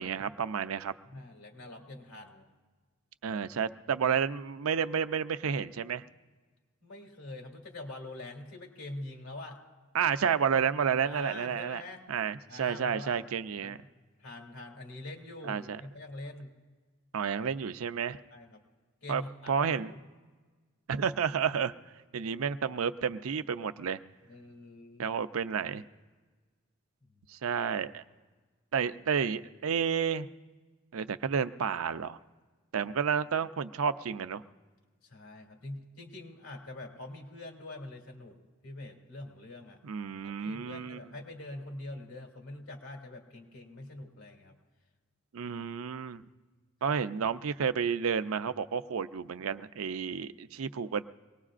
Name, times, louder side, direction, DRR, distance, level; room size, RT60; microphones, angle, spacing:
voice 1, 0.0-0.9 3.2-6.0 9.9-11.8 12.1-13.8 15.4-15.8 17.1-18.2 19.1-19.2 19.5-19.9 20.9-21.7 22.1-24.0 25.0-25.8 27.3-28.0 28.7-30.3 30.9-32.2 32.7-34.4 39.8-41.0 45.3-46.2 46.8-51.0, right 7 dB, 85° right, 11 dB, 0.5 m, -31 dB
voice 2, 1.1-2.5 6.8-9.6 11.0-12.0 12.5-13.2 13.6-13.8 14.2-16.5 18.3-18.6 19.0-20.0 24.3-25.1 35.0-38.4 38.6-39.8 40.2-44.5 45.4-45.6 46.9-47.0, left 2 dB, 90° left, 2 dB, 2.6 m, -44 dB
24.0 x 19.0 x 2.5 m, 1.4 s
head